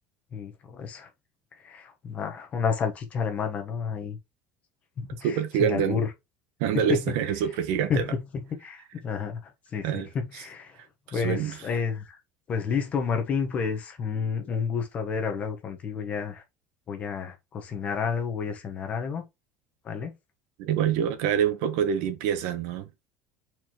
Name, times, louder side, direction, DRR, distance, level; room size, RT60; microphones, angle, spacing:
voice 1, 0.3-1.1 1.5-4.2 5.0-6.1 6.7-7.0 7.9-10.8 11.1-12.2 12.5-16.4 16.9-19.2 19.8-20.1, left 6 dB, 25° left, 1.1 m, -30 dB
voice 2, 5.2-6.0 6.6-8.0 9.8-10.1 11.1-11.5 20.6-22.9, right 9 dB, 65° right, 1.1 m, -26 dB
6.8 x 4.5 x 3.0 m
cardioid pair, 175°, 5 cm